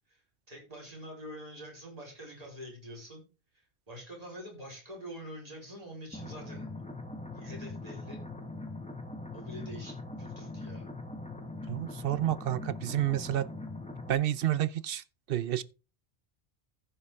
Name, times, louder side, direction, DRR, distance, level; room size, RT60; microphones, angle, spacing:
voice 1, 0.5-3.2 3.5-6.7 7.3-8.3 9.3-10.9, equal, 35° right, 4.0 m, -46 dB
sound 1, 6.1-14.1, left 2 dB, 5° left, 1.1 m, -41 dB
voice 2, 11.7-13.5 14.1-15.6, right 12 dB, 65° right, 0.7 m, -30 dB
15.0 x 5.6 x 3.5 m
omnidirectional pair, 1.1 m